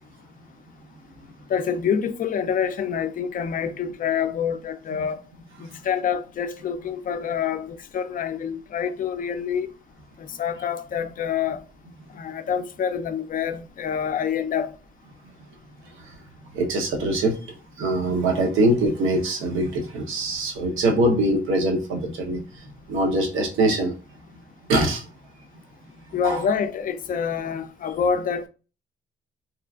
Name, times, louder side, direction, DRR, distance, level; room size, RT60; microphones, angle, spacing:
voice 1, 1.5-5.2 5.6-9.7 10.2-11.6 12.1-14.7 26.1-28.5, left 7 dB, 45° left, 0.4 m, -27 dB
voice 2, 16.5-17.4 17.8-24.0 24.7-25.0 26.2-26.4, right 1 dB, 80° right, 0.8 m, -23 dB
3.0 x 2.3 x 2.3 m
cardioid pair, 90°, 20 cm